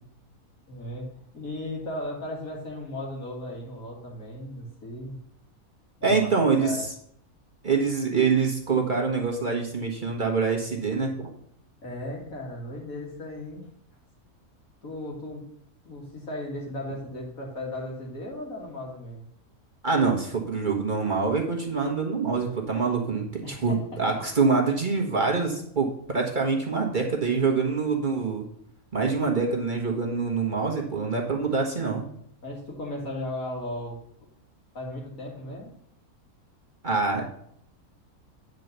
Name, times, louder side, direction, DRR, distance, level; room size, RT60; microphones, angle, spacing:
voice 1, 0.7-5.2 6.0-6.9 11.8-13.6 14.8-15.4 15.8-19.2 23.4-24.2 32.4-34.0 34.7-35.7, left 1 dB, 65° left, -2 dB, 2.8 m, -36 dB
voice 2, 6.0-6.9 7.6-11.3 19.8-28.4 28.9-32.0 36.8-37.2, right 4 dB, 35° right, 0 dB, 1.4 m, -25 dB
9.3 x 4.6 x 6.6 m, 0.68 s
omnidirectional pair, 1.6 m